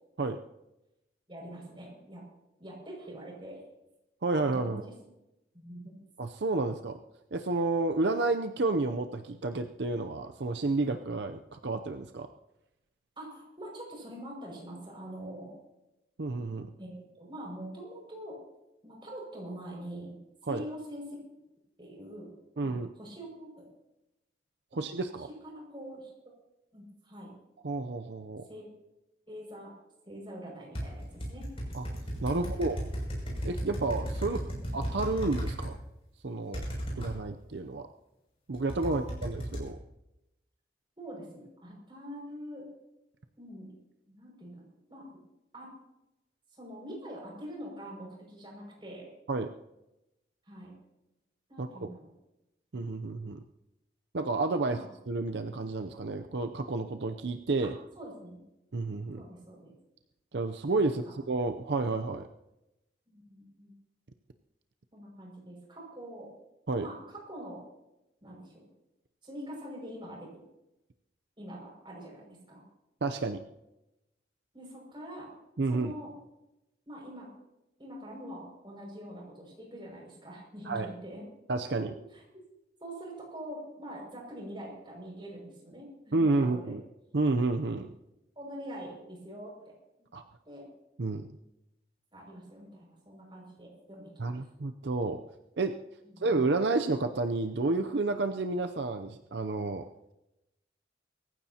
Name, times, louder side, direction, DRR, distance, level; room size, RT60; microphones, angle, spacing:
voice 1, 1.3-2.2 2.6-3.6 4.3-4.9 5.5-6.0 13.2-15.5 16.8-18.4 18.8-20.2 20.4-21.0 21.8-23.7 24.7-24.8 25.2-26.1 26.7-27.3 28.5-28.7 29.3-29.7 30.1-31.4 32.3-32.7 34.2-34.9 38.8-39.1 41.0-42.7 43.4-43.7 44.1-44.6 44.9-45.0 45.5-45.7 46.5-49.1 50.4-50.8 51.5-52.1 54.6-54.9 58.0-58.4 59.2-59.7 60.8-60.9 63.1-63.8 64.9-66.3 66.8-67.6 68.2-68.6 69.2-70.3 71.4-72.6 74.5-75.3 75.7-76.1 76.9-77.3 77.8-81.2 81.9-82.2 82.8-86.7 88.4-89.7 90.4-90.7 92.1-94.4 96.0-96.3, equal, 25° right, -1 dB, 6.1 m, -44 dB
voice 2, 4.2-4.8 6.2-7.0 7.3-12.3 16.2-16.7 20.5-20.6 22.6-22.9 24.7-25.3 27.6-28.4 31.7-31.9 32.2-32.8 33.4-34.4 34.7-35.8 36.2-36.6 37.0-37.9 38.5-39.8 49.3-49.5 51.6-51.7 52.7-53.4 54.1-54.8 55.1-57.8 58.7-59.2 60.3-62.3 66.7-66.9 73.0-73.4 75.6-75.9 80.7-80.9 81.5-81.9 86.1-86.8 87.1-87.9 90.1-90.2 91.0-91.3 94.2-95.2 95.6-95.7 96.2-100.1, right 3 dB, 70° right, 7 dB, 0.6 m, -30 dB
sound 1, 30.7-35.7 36.5-37.1 38.5-39.7, equal, 35° left, 6.7 m, -35 dB
24.5 x 15.0 x 2.9 m, 0.93 s
head